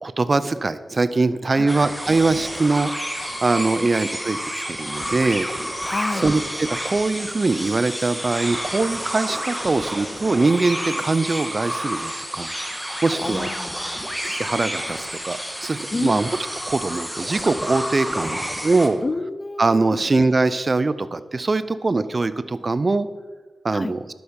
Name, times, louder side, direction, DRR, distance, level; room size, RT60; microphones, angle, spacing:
voice 1, 0.0-2.9 3.4-4.4 4.7-5.5 6.2-12.5 13.0-13.5 14.2-16.3 16.7-19.0 19.6-23.1 23.6-24.0, right 3 dB, 40° right, 14 dB, 0.6 m, -22 dB
sound 1, 1.7-18.9, equal, ahead, 1.5 m, -30 dB
voice 2, 5.8-6.3 13.2-14.1 15.9-16.2 19.0-20.0 23.7-24.0, left 3 dB, 35° left, 15 dB, 0.5 m, -29 dB
11.5 x 7.2 x 5.3 m, 1.4 s
cardioid pair, 65°, 0 cm